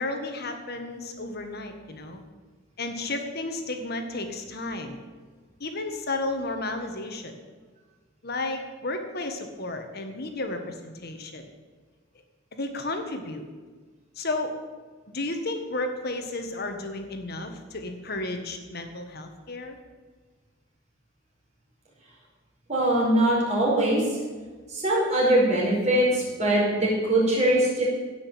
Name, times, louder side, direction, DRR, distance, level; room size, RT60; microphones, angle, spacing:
voice 1, 0.0-2.2 2.8-5.0 5.6-7.3 8.2-11.5 12.5-13.5 14.1-14.5 15.1-19.8, left 2 dB, 50° left, 6 dB, 1.6 m, -33 dB
voice 2, 22.7-24.2 24.7-27.8, right 1 dB, 35° right, -5 dB, 5.2 m, -22 dB
16.5 x 6.3 x 8.6 m, 1.4 s
head